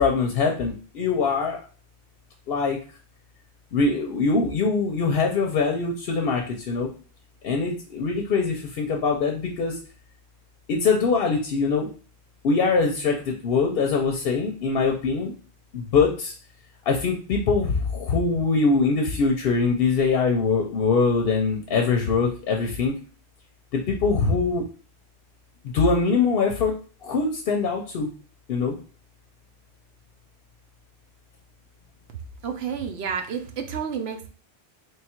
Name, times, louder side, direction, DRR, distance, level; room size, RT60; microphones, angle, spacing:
voice 1, 0.0-1.6 2.5-2.8 3.7-6.9 7.4-9.8 10.7-11.9 12.4-15.3 15.7-16.3 16.9-22.9 23.7-24.6 25.7-26.7 27.0-28.1 28.5-28.7, left 4 dB, 65° left, 2 dB, 0.7 m, -23 dB
voice 2, 32.4-34.3, right 7 dB, 75° right, 6 dB, 0.8 m, -30 dB
3.3 x 2.3 x 4.3 m, 0.39 s
omnidirectional pair, 1.1 m